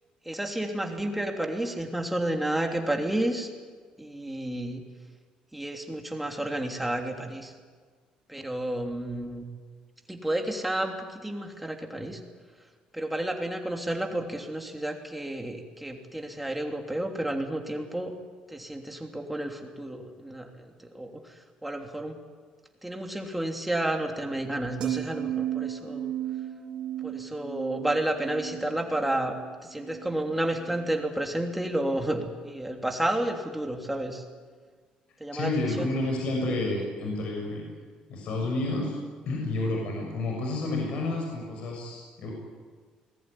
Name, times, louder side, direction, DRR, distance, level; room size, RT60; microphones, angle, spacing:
voice 1, 0.2-3.5 4.0-4.8 5.5-7.5 8.3-9.4 10.1-12.2 12.9-18.1 18.5-22.2 22.8-26.1 27.0-29.3 29.6-34.2 35.2-35.9, right 1 dB, 5° right, 2 dB, 3.1 m, -31 dB
sound 1, 24.8-31.1 31.4-31.7, right 11 dB, 55° right, 3.7 m, -35 dB
voice 2, 35.3-37.7 38.1-38.9 39.3-42.3, left 2 dB, 55° left, 0 dB, 7.0 m, -30 dB
27.5 x 21.0 x 9.9 m, 1.5 s
cardioid pair, 155°, 2 cm